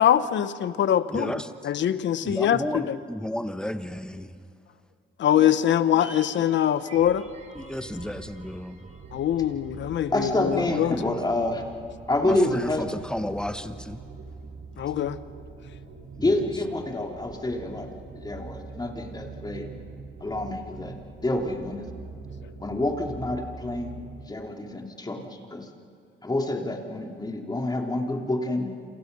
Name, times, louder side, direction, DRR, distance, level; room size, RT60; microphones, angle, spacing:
voice 1, 0.0-1.3 1.6-3.0 5.2-7.2 9.1-10.9 14.8-15.2, left 10 dB, 65° left, 13 dB, 1.1 m, -23 dB
voice 2, 1.1-1.7 2.2-4.4 7.5-8.9 10.5-10.8 12.2-14.0 16.2-16.3, left 1 dB, 5° left, 9 dB, 1.3 m, -33 dB
sound 1, 5.2-9.7 10.0-10.1, right 1 dB, 35° right, 4.6 m, -47 dB
sound 2, 7.2-24.4, right 4 dB, 65° right, 5.0 m, -44 dB
voice 3, 10.1-11.6 12.1-12.8 16.2-19.7 20.2-21.9 22.6-24.0 24.3-25.7 26.2-28.7, left 2 dB, 20° left, 2 dB, 3.1 m, -28 dB
28.5 x 27.0 x 5.5 m, 2.3 s
cardioid pair, 90°, 20 cm